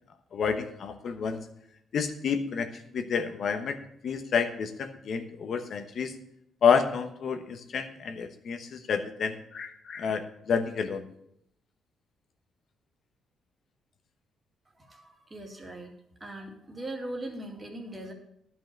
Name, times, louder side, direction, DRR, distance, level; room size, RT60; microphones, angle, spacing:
voice 1, 0.3-1.4 1.9-2.7 2.9-3.8 4.0-6.1 6.6-11.0, left 6 dB, 60° left, 7 dB, 1.0 m, -29 dB
voice 2, 14.7-15.9 16.2-18.1, right 1 dB, 25° right, 3 dB, 2.3 m, -40 dB
10.5 x 5.6 x 7.8 m, 0.73 s
cardioid pair, 90°, 0 cm